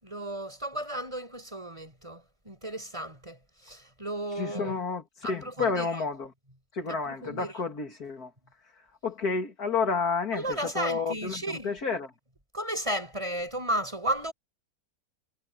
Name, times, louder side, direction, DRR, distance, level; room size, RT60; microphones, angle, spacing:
voice 1, 0.0-4.7 5.2-5.9 6.9-7.5 10.3-11.7 12.5-14.3, right 1 dB, 20° right, 6.2 m, -34 dB
voice 2, 4.4-5.0 5.3-6.3 6.7-8.3 9.0-12.1, left 4 dB, 80° left, 3.0 m, -30 dB
omnidirectional pair, 1.6 m